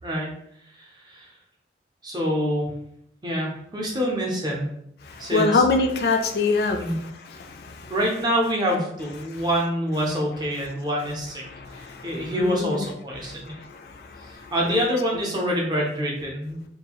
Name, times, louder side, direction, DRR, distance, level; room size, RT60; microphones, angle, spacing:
voice 1, 0.7-1.3 2.0-2.7 3.2-4.7 5.2-5.6 6.8-7.0 7.9-13.6 14.2-16.7, equal, 25° right, -1 dB, 0.5 m, -26 dB
voice 2, 5.0-8.0 9.3-9.4 11.4-12.9 13.2-14.8, left 3 dB, 60° left, 3 dB, 0.3 m, -26 dB
2.6 x 2.3 x 2.9 m, 0.73 s
head